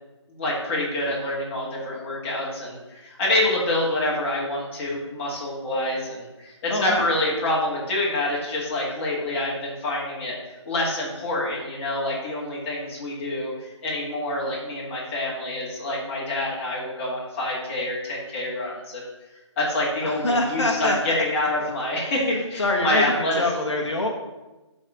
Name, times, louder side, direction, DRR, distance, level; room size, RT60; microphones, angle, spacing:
voice 1, 0.4-10.4 10.7-13.5 13.8-19.1 19.6-23.4, left 1 dB, 25° left, -5 dB, 2.3 m, -26 dB
voice 2, 6.7-7.1 20.0-21.2 21.6-21.7 22.6-24.1, left 2 dB, 70° left, 1 dB, 1.3 m, -25 dB
9.9 x 4.3 x 5.0 m, 1.1 s
figure-of-eight pair, 145°, 15 cm